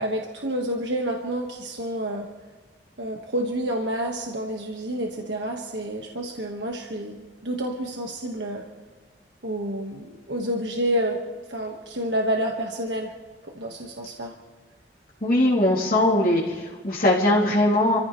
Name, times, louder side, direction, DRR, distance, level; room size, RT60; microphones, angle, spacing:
voice 1, 0.0-2.3 3.0-8.6 9.4-11.2 11.5-13.1 13.4-14.3, right 1 dB, 85° right, 1 dB, 1.6 m, -29 dB
voice 2, 15.2-18.0, left 1 dB, 50° left, -7 dB, 3.4 m, -20 dB
29.0 x 15.5 x 3.3 m, 1.4 s
head